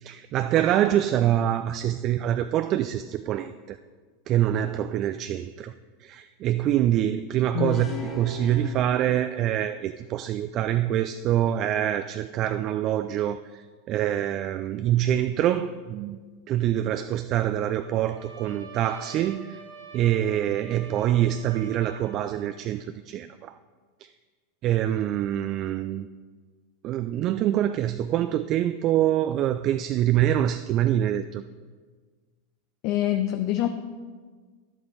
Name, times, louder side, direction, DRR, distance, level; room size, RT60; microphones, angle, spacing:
voice 1, 0.0-3.8 4.3-5.7 6.0-16.2 16.5-19.6 19.9-23.6 24.0-24.1 24.6-26.1 26.8-31.4, right 11 dB, 40° right, 10 dB, 0.3 m, -25 dB
voice 2, 7.5-7.8 32.8-33.7, left 13 dB, 50° left, 7 dB, 0.5 m, -25 dB
sound 1, 7.7-9.7, left 1 dB, 20° left, 2.2 m, -39 dB
Trumpet, 17.7-22.6, right 5 dB, 70° right, 1.3 m, -45 dB
11.0 x 8.0 x 4.1 m, 1.5 s
figure-of-eight pair, 90°, 0 cm